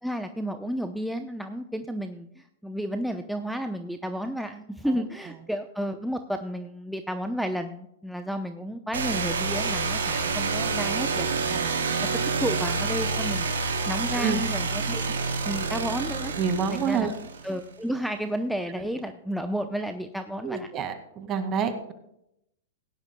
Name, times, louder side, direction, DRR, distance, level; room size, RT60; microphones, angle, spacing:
voice 1, 0.0-11.7 12.4-13.5 13.9-15.1 15.4-16.3 16.7-17.1 17.4-20.7, equal, ahead, 6 dB, 0.7 m, -32 dB
sound 1, 8.9-17.7, right 4 dB, 85° right, 3.1 m, -28 dB
voice 2, 16.4-17.1 20.4-21.9, right 6 dB, 30° right, 7 dB, 2.1 m, -28 dB
17.5 x 11.0 x 2.3 m, 0.78 s
hypercardioid pair, 125°, 0 cm